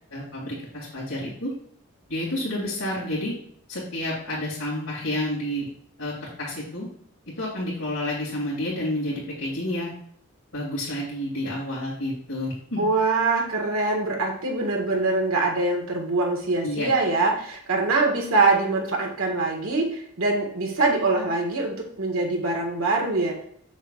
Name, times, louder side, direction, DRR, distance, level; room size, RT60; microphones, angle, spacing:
voice 1, 0.1-1.5 2.1-3.3 3.7-5.7 6.0-6.9 7.4-9.9 10.5-12.9 16.6-16.9, left 1 dB, 75° left, -8 dB, 2.9 m, -30 dB
voice 2, 12.8-23.4, right 3 dB, 80° right, 1 dB, 1.8 m, -24 dB
7.2 x 7.1 x 2.5 m, 0.66 s
head